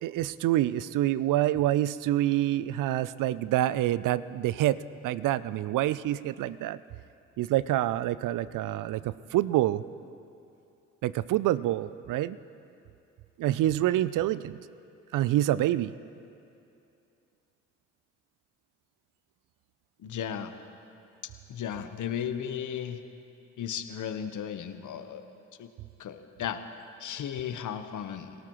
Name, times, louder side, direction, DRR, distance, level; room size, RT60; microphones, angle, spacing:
voice 1, 0.0-4.8 5.0-6.8 7.4-9.8 11.0-12.4 13.4-14.6 15.1-15.9, right 14 dB, 55° right, 17 dB, 0.5 m, -27 dB
voice 2, 20.0-20.5 21.5-23.0 23.6-25.2 25.6-25.7 26.0-26.6 27.0-28.3, left 9 dB, 50° left, 9 dB, 1.0 m, -35 dB
21.5 x 17.5 x 3.1 m, 2.6 s
hypercardioid pair, 50°, 38 cm